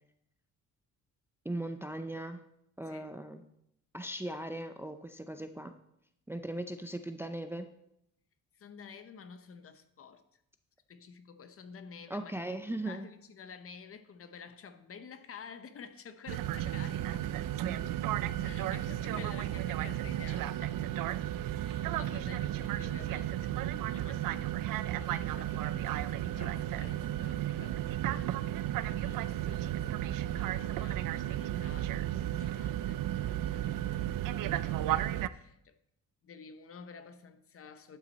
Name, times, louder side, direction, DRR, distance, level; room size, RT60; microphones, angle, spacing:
voice 1, 1.4-2.4 2.8-3.4 3.9-5.7 6.3-7.7 12.1-13.1 17.7-17.9, right 1 dB, 5° right, 0.5 m, -38 dB
voice 2, 8.6-10.2 10.9-12.3 12.9-17.3 18.4-20.8 21.6-24.3 24.7-35.8 36.2-38.0, left 6 dB, 40° left, 0.8 m, -51 dB
sound 1, 16.3-35.3, right 12 dB, 75° right, 0.5 m, -33 dB
12.0 x 9.0 x 4.1 m
cardioid pair, 145°, 33 cm